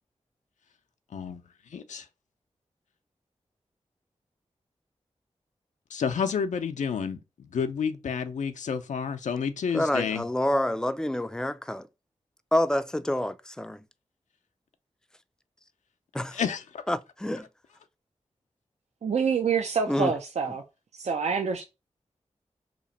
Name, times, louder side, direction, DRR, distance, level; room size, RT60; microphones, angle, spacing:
voice 1, 1.7-2.1 5.9-10.2 16.3-16.8, left 6 dB, 80° left, 0.4 m, -30 dB
voice 2, 9.7-11.9 12.5-13.8 16.1-16.4 16.9-17.5 19.9-20.1, left 1 dB, 5° left, 0.3 m, -27 dB
voice 3, 19.0-20.6 20.9-21.6, right 6 dB, 65° right, 0.4 m, -26 dB
2.9 x 2.5 x 4.0 m
cardioid pair, 40°, 12 cm